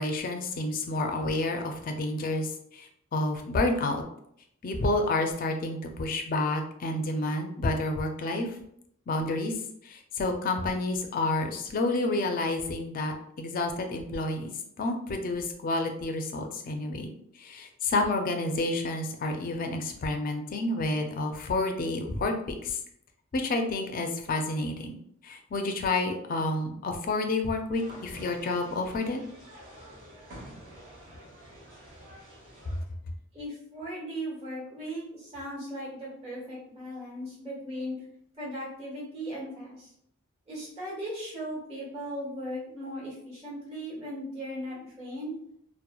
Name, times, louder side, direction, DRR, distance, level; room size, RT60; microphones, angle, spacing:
voice 1, 0.0-4.0 4.6-8.5 9.1-9.5 9.8-14.5 14.8-17.1 17.4-22.8 23.3-25.0 25.2-29.2, left 2 dB, 45° left, 4 dB, 0.4 m, -29 dB
sound 1, 27.7-32.8, equal, 45° right, 1.0 m, -48 dB
voice 2, 33.3-37.9 38.4-39.9 40.5-45.4, equal, 30° right, -7 dB, 1.3 m, -37 dB
2.9 x 2.1 x 2.2 m, 0.70 s
head